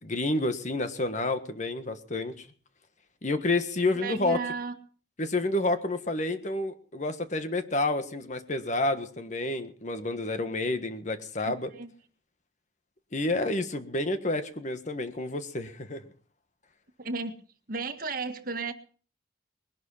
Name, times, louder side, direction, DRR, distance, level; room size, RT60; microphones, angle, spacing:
voice 1, 0.0-2.5 3.2-4.4 5.2-11.7 13.1-16.0, left 2 dB, 45° left, 9 dB, 1.6 m, -29 dB
voice 2, 3.9-4.7 11.4-11.9 17.0-17.4 17.7-18.7, right 4 dB, 55° right, 7 dB, 1.7 m, -34 dB
20.5 x 12.0 x 5.6 m, 0.41 s
head